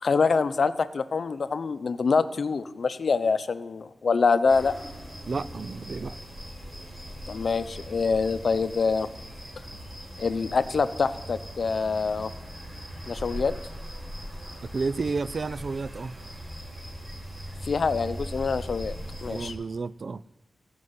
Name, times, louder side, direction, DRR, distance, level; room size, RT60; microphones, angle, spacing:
voice 1, 0.0-4.7 7.3-9.1 10.2-12.3 13.1-13.5 17.6-18.9 19.2-19.5, left 4 dB, 70° left, 0.7 m, -25 dB
sound 1, 4.5-19.5, equal, 45° right, 5.5 m, -40 dB
voice 2, 5.3-6.2 14.7-16.2 19.3-20.2, right 4 dB, 60° right, 0.4 m, -31 dB
16.0 x 6.3 x 9.6 m
cardioid pair, 60°, 0 cm